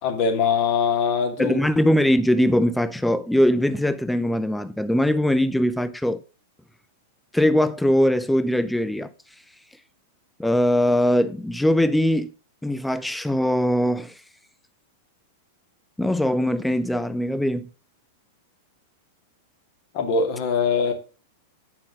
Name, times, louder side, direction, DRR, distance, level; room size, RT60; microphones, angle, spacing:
voice 1, 0.0-1.6 19.9-20.9, left 5 dB, 50° left, 2.4 m, -22 dB
voice 2, 1.4-6.2 7.3-9.1 10.4-12.3 12.6-14.2 16.0-17.7, equal, 5° left, 0.5 m, -21 dB
8.9 x 5.8 x 5.1 m
hypercardioid pair, 120°, 0 cm